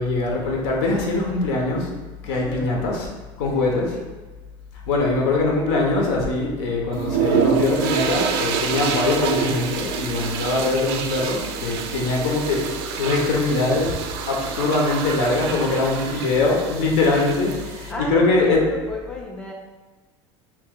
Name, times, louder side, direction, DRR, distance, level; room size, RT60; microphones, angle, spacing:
voice 1, 0.0-1.9 2.2-3.1 3.4-3.9 4.9-13.9 14.3-18.6, left 3 dB, 75° left, 0 dB, 0.9 m, -22 dB
voice 2, 2.2-2.8 3.5-4.1 15.6-16.1 17.6-19.5, left 2 dB, 5° left, -1 dB, 0.4 m, -35 dB
sound 1, 6.9-17.9, right 7 dB, 80° right, 0.4 m, -27 dB
3.1 x 2.8 x 3.7 m, 1.2 s
supercardioid pair, 140°, 13 cm